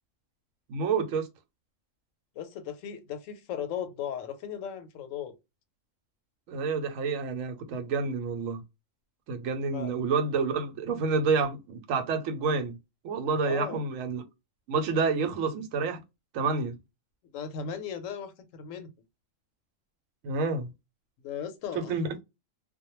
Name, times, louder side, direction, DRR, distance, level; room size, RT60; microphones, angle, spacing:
voice 1, 0.7-1.3 6.5-8.6 9.3-12.7 13.0-14.2 14.7-16.0 16.3-16.8 20.2-20.7 21.7-22.1, right 4 dB, 90° right, 1.0 m, -28 dB
voice 2, 2.4-5.3 9.7-9.9 13.4-13.8 17.3-18.9 21.2-22.2, left 8 dB, 80° left, 0.9 m, -37 dB
2.2 x 2.1 x 2.9 m
omnidirectional pair, 1.3 m